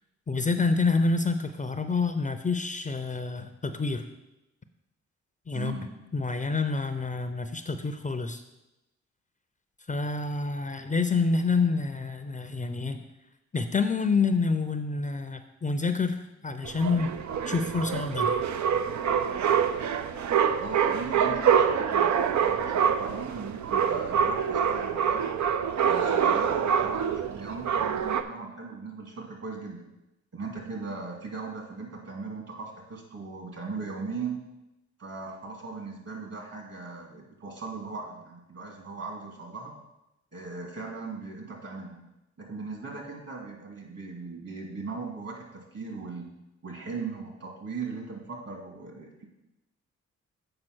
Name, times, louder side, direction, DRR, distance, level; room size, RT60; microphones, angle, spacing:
voice 1, 0.3-4.1 5.5-5.8 6.1-8.4 9.9-13.0 13.5-17.1 17.4-18.4, left 4 dB, 25° left, 8 dB, 0.6 m, -27 dB
voice 2, 5.5-5.9 20.6-25.3 25.8-29.8 30.3-34.4 35.0-39.7 40.3-42.0 42.4-46.3 46.6-49.2, right 4 dB, 55° right, 1 dB, 2.5 m, -38 dB
sound 1, 16.6-28.2, right 7 dB, 70° right, 0.6 m, -26 dB
7.7 x 4.9 x 6.2 m, 0.95 s
cardioid pair, 80°, 30 cm